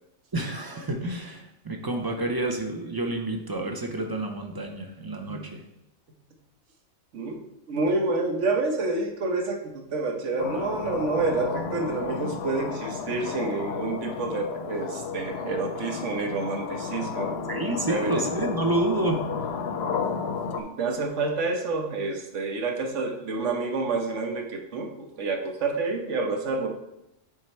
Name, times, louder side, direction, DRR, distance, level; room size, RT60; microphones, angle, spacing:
voice 1, 0.3-5.7 17.5-19.2, right 2 dB, 35° right, 3 dB, 0.3 m, -29 dB
voice 2, 7.1-18.3 20.6-26.7, right 3 dB, 75° right, 3 dB, 1.2 m, -29 dB
sound 1, 10.4-20.6, left 5 dB, 65° left, 0.7 m, -32 dB
6.4 x 3.7 x 4.3 m, 0.86 s
omnidirectional pair, 1.3 m